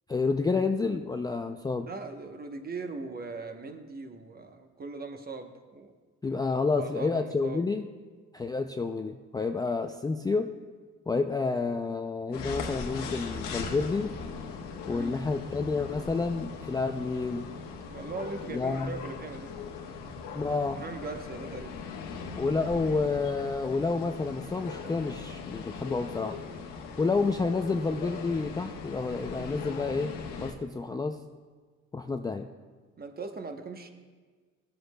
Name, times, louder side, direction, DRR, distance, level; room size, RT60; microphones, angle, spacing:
voice 1, 0.1-1.9 6.2-7.8 8.3-10.5 11.1-14.1 14.9-17.5 18.5-18.9 20.3-20.8 22.4-26.4 27.0-31.2 31.9-32.5, left 4 dB, 15° left, 6 dB, 0.3 m, -29 dB
voice 2, 1.9-5.9 6.8-7.6 14.8-15.2 17.9-19.6 20.8-21.8 33.0-33.9, right 3 dB, 30° right, 6 dB, 0.9 m, -40 dB
sound 1, 12.3-30.5, left 5 dB, 85° left, 1.2 m, -39 dB
17.0 x 7.7 x 2.2 m, 1.5 s
cardioid pair, 100°, 31 cm